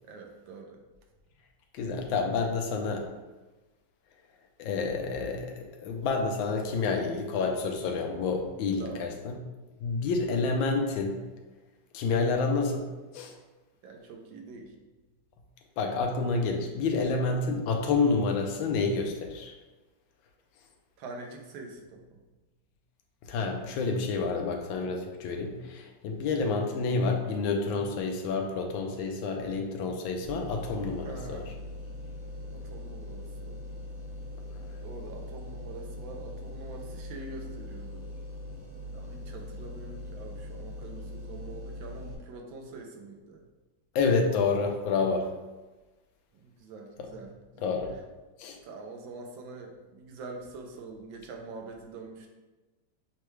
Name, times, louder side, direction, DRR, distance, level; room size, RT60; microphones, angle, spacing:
voice 1, 0.0-0.8 1.9-2.1 8.8-9.0 13.8-14.7 21.0-22.2 31.0-31.5 32.5-33.6 34.8-38.1 38.9-43.4 46.3-47.7 48.6-52.3, right 3 dB, 75° right, 2 dB, 1.4 m, -45 dB
voice 2, 1.7-3.0 4.6-9.4 9.8-11.2 11.9-13.3 15.8-19.5 23.3-31.4 43.9-45.3 47.0-47.1 47.6-47.9 48.4-48.6, left 4 dB, 80° left, 3 dB, 1.4 m, -29 dB
sound 1, 30.2-42.1, left 1 dB, 35° right, 0.6 m, -41 dB
6.7 x 2.3 x 3.1 m, 1.2 s
omnidirectional pair, 2.2 m